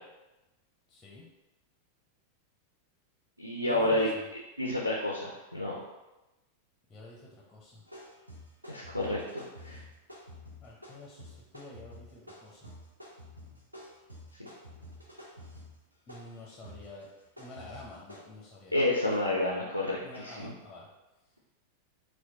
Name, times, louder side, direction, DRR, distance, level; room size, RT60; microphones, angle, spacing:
voice 1, 0.9-1.3 3.6-4.3 6.9-7.8 10.6-12.7 16.1-17.1 17.4-18.8 20.0-20.9, left 2 dB, 20° left, -3 dB, 0.6 m, -49 dB
voice 2, 3.4-4.1 4.6-5.8 8.7-9.8 18.7-20.5, left 1 dB, 90° left, -2 dB, 0.4 m, -30 dB
sound 1, 7.9-18.2, left 1 dB, 85° right, 0.6 m, -49 dB
4.3 x 2.2 x 2.7 m, 1.0 s
figure-of-eight pair, 90°, 0 cm